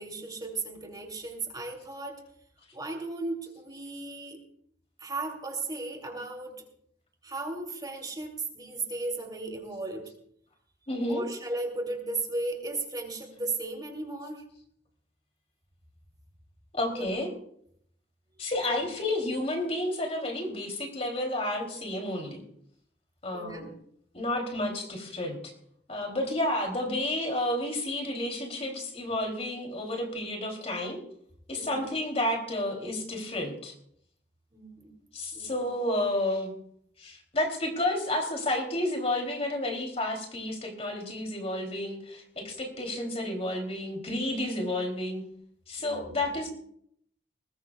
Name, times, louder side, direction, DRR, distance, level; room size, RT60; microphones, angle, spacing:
voice 1, 0.0-2.2 2.7-4.4 5.0-6.5 7.2-10.1 11.1-14.5 16.9-17.1 18.7-18.8 23.3-23.7 31.6-31.9 34.5-34.9 35.3-35.6 45.8-46.4, right 2 dB, 25° right, 1 dB, 3.3 m, -36 dB
voice 2, 10.9-11.2 16.7-17.3 18.4-22.4 23.2-23.7 24.1-25.5 25.9-31.0 31.5-33.7 35.1-36.5 37.0-45.2 45.7-46.5, left 1 dB, 35° left, 2 dB, 3.2 m, -31 dB
21.0 x 20.5 x 2.4 m, 0.70 s
head